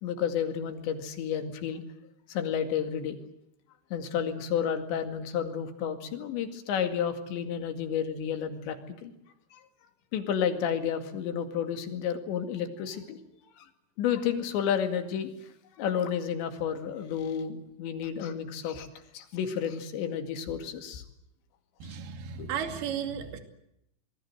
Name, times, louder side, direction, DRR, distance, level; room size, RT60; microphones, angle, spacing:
voice 1, 0.0-1.8 2.3-3.2 3.9-8.8 9.0-9.1 9.5-9.6 10.1-13.2 13.6-13.7 14.0-15.3 15.7-18.9 19.1-21.0 21.8-22.0 22.4-22.5, left 8 dB, 75° left, 7 dB, 4.5 m, -31 dB
voice 2, 21.8-23.4, right 8 dB, 65° right, 6 dB, 4.2 m, -34 dB
27.0 x 21.0 x 7.9 m, 0.81 s
omnidirectional pair, 5.2 m